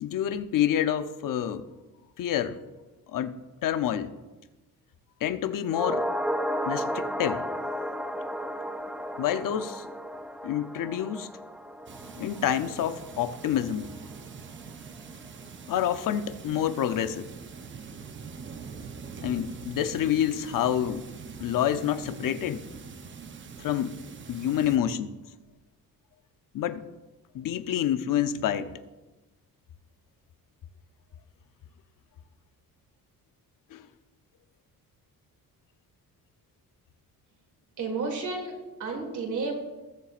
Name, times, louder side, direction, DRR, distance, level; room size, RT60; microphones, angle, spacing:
voice 1, 0.0-1.6 2.2-2.6 3.1-3.4 3.6-4.1 5.2-6.1 6.7-7.4 9.2-9.9 10.4-11.3 12.2-13.9 15.7-17.3 19.2-21.1 21.4-22.6 23.6-24.0 24.3-25.1 26.5-26.9 27.3-28.7 33.7-33.9, left 10 dB, 65° left, 11 dB, 0.7 m, -28 dB
sound 1, 5.7-14.2 14.4-14.5, equal, 5° right, 0.4 m, -34 dB
sound 2, 11.9-24.8, right 5 dB, 30° right, 0.7 m, -43 dB
voice 2, 37.8-39.5, right 4 dB, 55° right, 1 dB, 2.7 m, -32 dB
20.5 x 7.1 x 2.5 m, 1.1 s
cardioid pair, 160°, 36 cm